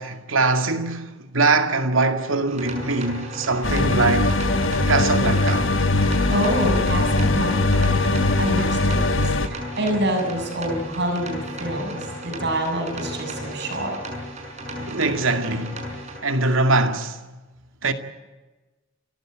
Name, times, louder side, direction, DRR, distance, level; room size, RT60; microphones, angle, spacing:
voice 1, 0.0-4.4 4.9-5.7 14.8-15.8 16.2-17.2 17.8-17.9, right 3 dB, 85° right, 2.2 m, -22 dB
sound 1, 2.5-16.2, equal, 35° right, 6.3 m, -35 dB
sound 2, 3.6-9.5, left 2 dB, 75° left, 1.5 m, -21 dB
voice 2, 6.3-14.0, right 1 dB, 55° right, 7.2 m, -27 dB
29.5 x 14.5 x 9.0 m
head